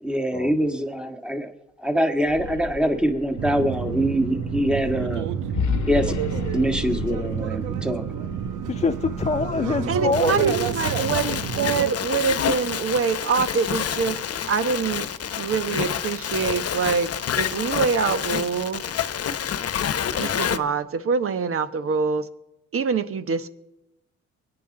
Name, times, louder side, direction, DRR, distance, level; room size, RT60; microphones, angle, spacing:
voice 1, 0.0-1.5 1.8-5.3 5.9-6.1 6.5-8.0, equal, 5° right, 1.6 m, -24 dB
sound 1, 2.1-10.2, left 8 dB, 70° left, 1.1 m, -34 dB
sound 2, 3.4-11.9, right 8 dB, 80° right, 1.0 m, -29 dB
voice 2, 8.7-10.6, left 4 dB, 25° left, 0.5 m, -25 dB
voice 3, 9.9-14.2 14.5-15.1 15.4-17.1 17.4-18.8 20.2-22.3 22.7-23.5, right 5 dB, 45° right, 1.2 m, -25 dB
voice 4, 10.8-13.0 13.3-15.0 15.7-17.0 17.3-18.4 18.9-20.6, left 9 dB, 55° left, 1.1 m, -27 dB
24.0 x 9.9 x 3.9 m
cardioid pair, 90°, 30 cm